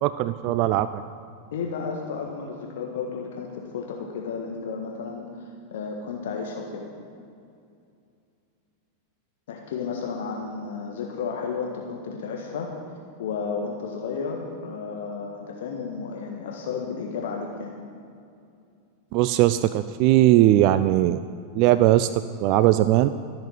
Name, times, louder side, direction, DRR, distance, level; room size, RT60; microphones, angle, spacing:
voice 1, 0.0-1.0 19.1-21.2 21.5-23.1, right 14 dB, 45° right, 14 dB, 0.4 m, -19 dB
voice 2, 1.5-5.4 5.7-6.8 9.5-12.7 13.2-17.7, left 5 dB, 60° left, 1 dB, 1.6 m, -32 dB
14.5 x 7.9 x 9.3 m, 2.5 s
figure-of-eight pair, 90°, 0 cm